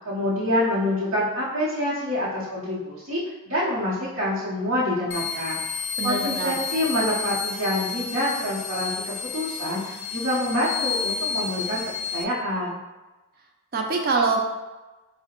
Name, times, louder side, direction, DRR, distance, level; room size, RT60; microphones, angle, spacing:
voice 1, 0.0-3.2 3.5-5.6 6.0-11.8 12.1-12.8, left 1 dB, 80° right, -9 dB, 0.9 m, -26 dB
sound 1, 5.1-12.2, left 6 dB, 60° left, 0.3 m, -31 dB
voice 2, 6.0-6.6 13.7-14.4, right 3 dB, 45° right, 2 dB, 0.5 m, -24 dB
4.7 x 2.1 x 2.9 m, 1.1 s
head